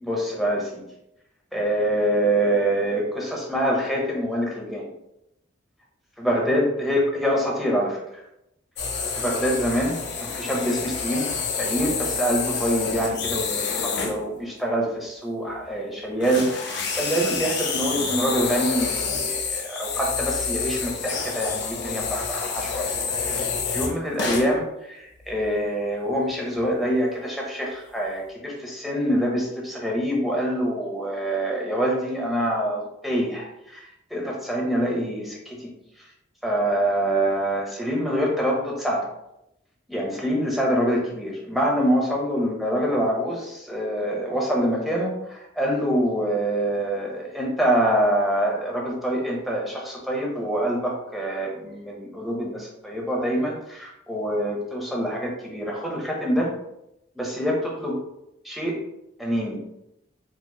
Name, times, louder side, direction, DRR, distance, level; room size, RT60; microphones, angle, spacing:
voice 1, 0.0-0.8 1.5-4.9 6.2-8.0 9.1-11.3 11.6-22.9 23.3-35.7 36.4-39.1 39.9-56.5 57.2-58.0 58.4-58.8 59.2-59.6, equal, ahead, -2 dB, 0.7 m, -25 dB
sound 1, 8.8-14.2 15.5-15.7 16.2-24.6 25.2-25.5 26.1-26.2 26.6-26.7, left 5 dB, 55° left, 0.6 m, -28 dB
4.6 x 2.9 x 2.3 m, 0.84 s
head